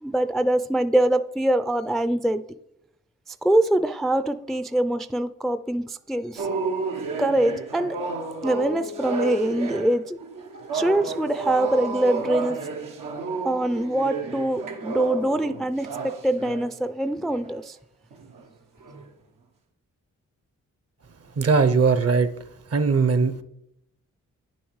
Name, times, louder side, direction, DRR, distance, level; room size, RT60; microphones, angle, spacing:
voice 1, 0.0-2.4 3.3-6.5 7.2-8.0 8.4-10.2 10.7-12.6 13.4-17.8, right 1 dB, ahead, 0.4 m, -24 dB
sound 1, 6.4-16.7 17.3-17.5 18.1-18.4 18.8-19.1, right 4 dB, 90° right, 1.0 m, -31 dB
voice 2, 21.4-22.3 22.7-23.4, right 4 dB, 50° right, 0.8 m, -19 dB
9.2 x 7.2 x 3.2 m
supercardioid pair, 45°, 32 cm